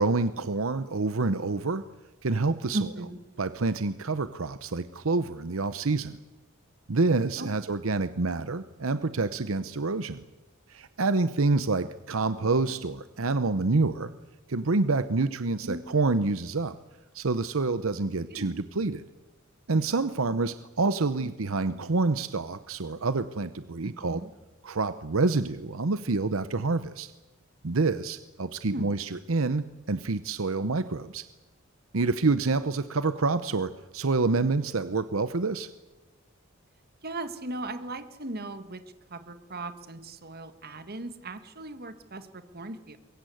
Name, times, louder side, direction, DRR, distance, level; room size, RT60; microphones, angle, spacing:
voice 1, 0.0-1.8 2.2-2.8 3.4-6.2 6.9-10.2 10.7-14.1 14.5-16.8 17.1-19.0 19.7-24.2 24.6-27.1 27.6-31.2 31.9-35.7, right 3 dB, 75° right, 12 dB, 0.9 m, -27 dB
voice 2, 2.7-3.2 7.4-7.5 15.6-15.8 18.3-18.6 21.2-21.3 23.8-24.3 28.7-28.9 37.0-38.8 39.1-43.0, right 2 dB, 50° right, 10 dB, 1.8 m, -37 dB
24.0 x 22.5 x 7.9 m, 1.2 s
head